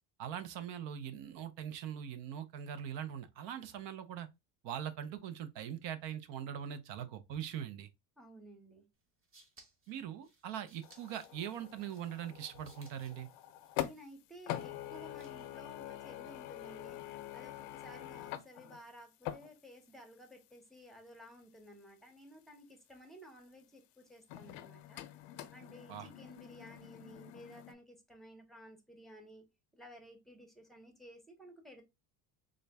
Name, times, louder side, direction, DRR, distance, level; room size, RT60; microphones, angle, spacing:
voice 1, 0.2-4.3 4.6-7.9 9.9-13.3 25.9-26.1, right 9 dB, 65° right, 0.7 m, -42 dB
voice 2, 8.2-8.9 13.8-29.5 29.7-31.8, equal, ahead, 0.6 m, -55 dB
sound 1, 9.0-15.6, right 3 dB, 25° right, 0.9 m, -65 dB
sound 2, 10.8-14.2 14.5-20.0 20.3-20.4 24.3-27.7, left 13 dB, 80° left, 0.6 m, -45 dB
3.7 x 2.2 x 3.3 m
cardioid pair, 130°, 46 cm